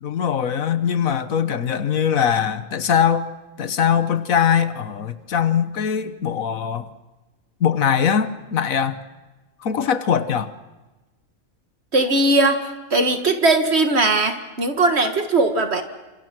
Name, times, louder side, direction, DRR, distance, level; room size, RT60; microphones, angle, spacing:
voice 1, 0.0-3.3 3.6-6.9 7.6-9.0 9.6-10.5, left 8 dB, 75° left, 1.5 m, -21 dB
voice 2, 11.9-15.8, right 2 dB, 50° right, 2.1 m, -19 dB
29.0 x 26.5 x 6.1 m
omnidirectional pair, 1.4 m